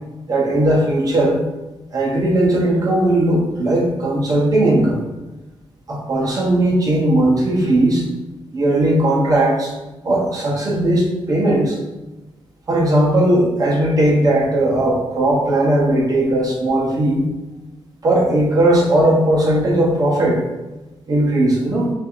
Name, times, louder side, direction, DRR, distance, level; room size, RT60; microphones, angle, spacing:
voice 1, 0.3-1.4 1.9-5.0 5.9-8.0 8.5-9.7 10.0-11.8 12.7-17.2 18.0-20.4 21.1-21.9, right 1 dB, 35° right, -3 dB, 0.7 m, -17 dB
4.4 x 2.4 x 2.5 m, 1.1 s
wide cardioid pair, 155°, 10 cm